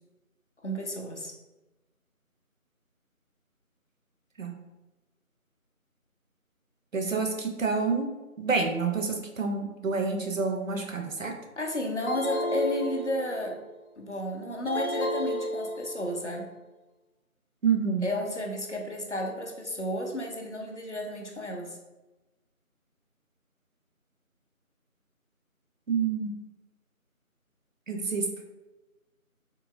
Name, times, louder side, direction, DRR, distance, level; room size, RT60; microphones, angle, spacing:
voice 1, 0.6-1.3 11.6-13.6 14.0-16.5 18.0-21.8, left 1 dB, 55° left, 1 dB, 0.6 m, -32 dB
voice 2, 6.9-8.1 8.4-11.3 17.6-18.0 25.9-26.3 27.9-28.3, right 5 dB, 65° right, 4 dB, 0.6 m, -28 dB
sound 1, 12.1-13.6 14.7-16.2, equal, 80° left, 0.9 m, -32 dB
3.7 x 2.7 x 2.4 m, 1.1 s
figure-of-eight pair, 175°, 43 cm